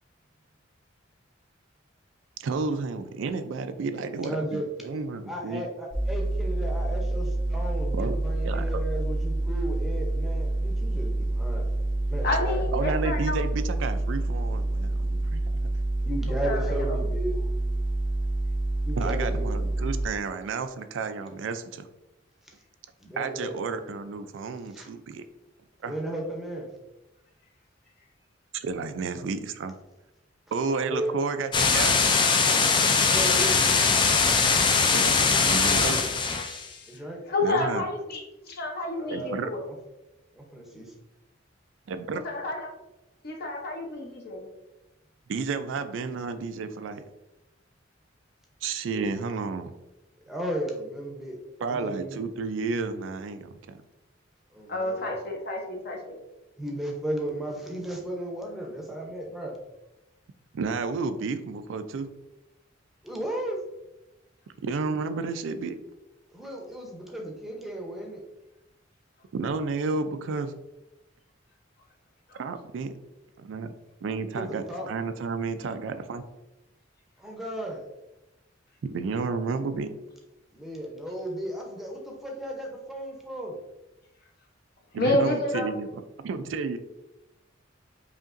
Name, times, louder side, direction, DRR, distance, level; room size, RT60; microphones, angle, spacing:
voice 1, 2.4-5.7 7.9-8.1 8.4-8.8 12.7-15.4 19.0-21.9 23.2-25.2 25.8-25.9 28.5-29.7 30.5-32.0 34.9-35.2 35.4-36.0 37.4-37.9 39.1-39.5 41.9-42.2 45.3-47.0 48.6-49.7 51.6-53.8 60.5-62.1 64.6-65.8 69.3-70.5 72.4-72.9 73.4-73.7 74.0-76.2 78.8-79.9 84.9-85.9 86.2-86.8, right 4 dB, 75° right, 10 dB, 0.3 m, -31 dB
voice 2, 4.2-4.7 5.3-11.6 12.1-12.7 16.0-17.4 18.8-19.9 22.4-22.5 23.0-23.6 24.7-24.9 25.8-26.7 30.8-31.2 33.1-33.6 35.3-36.0 36.9-37.2 38.9-39.8 40.3-40.9 48.9-49.1 50.3-51.4 51.6-52.2 54.5-55.1 56.6-59.6 63.0-63.6 66.3-68.2 74.3-74.9 77.2-77.9 80.5-83.6, right 1 dB, ahead, 0 dB, 0.7 m, -35 dB
sound 1, 5.9-20.0, right 2 dB, 75° left, 1.3 m, -27 dB
voice 3, 12.2-13.4 16.3-16.9 37.3-39.7 42.2-42.7 43.2-44.5 54.7-56.2 72.3-72.4 85.0-85.7, left 2 dB, 55° left, 1 dB, 0.8 m, -29 dB
sound 2, 31.5-36.7, left 5 dB, 25° left, 0.3 m, -21 dB
5.0 x 2.8 x 2.5 m, 0.95 s
head